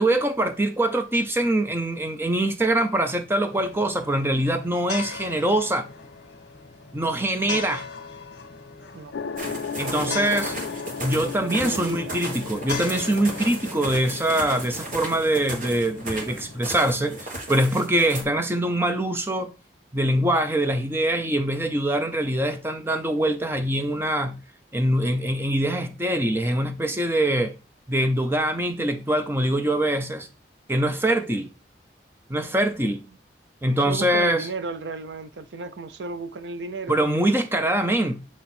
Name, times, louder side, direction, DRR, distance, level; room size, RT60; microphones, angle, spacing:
voice 1, 0.0-5.9 6.9-7.8 9.8-10.5 11.0-19.5 19.9-24.4 24.7-27.5 27.9-30.3 30.7-31.5 32.3-33.0 33.6-34.5 36.9-38.2, right 1 dB, 10° right, 0.5 m, -23 dB
sound 1, 3.5-16.7, left 5 dB, 60° left, 1.0 m, -40 dB
sound 2, 9.1-17.9, left 5 dB, 80° left, 0.4 m, -37 dB
sound 3, 9.4-18.2, right 2 dB, 45° right, 1.5 m, -36 dB
voice 2, 9.8-10.5 11.5-12.2 33.9-37.4, right 3 dB, 70° right, 0.5 m, -35 dB
7.7 x 3.0 x 4.3 m
head